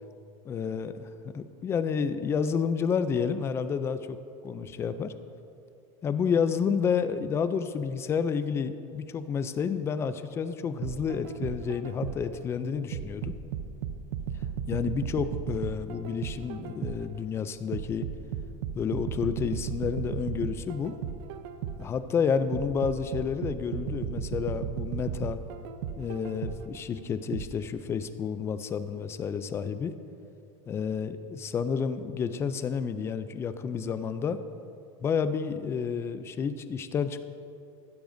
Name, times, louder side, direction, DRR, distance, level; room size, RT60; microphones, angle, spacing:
voice 1, 0.5-4.2 4.4-5.1 6.0-13.4 14.7-18.0 18.7-21.0 21.8-25.4 26.0-29.9 30.7-34.4 35.0-37.2, left 6 dB, 15° left, 12 dB, 0.3 m, -30 dB
sound 1, 10.8-12.4 12.9-17.2 17.7-22.0 22.5-26.8 27.3-27.5, right 8 dB, 55° right, 0.6 m, -35 dB
15.5 x 12.0 x 2.6 m, 2.6 s
supercardioid pair, 155°, 16 cm